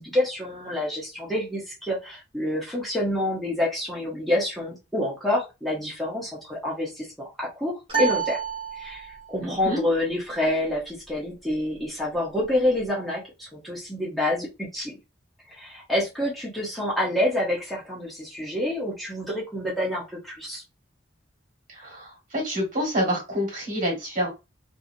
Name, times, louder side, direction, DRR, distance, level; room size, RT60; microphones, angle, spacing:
voice 1, 0.0-8.4 8.7-15.0 15.5-20.6, left 1 dB, ahead, -6 dB, 0.8 m, -27 dB
sound 1, 7.9-9.4, right 6 dB, 30° right, 1.0 m, -28 dB
voice 2, 9.4-9.8 21.7-24.3, equal, 45° right, 0 dB, 1.5 m, -27 dB
2.7 x 2.6 x 2.7 m, 0.26 s
head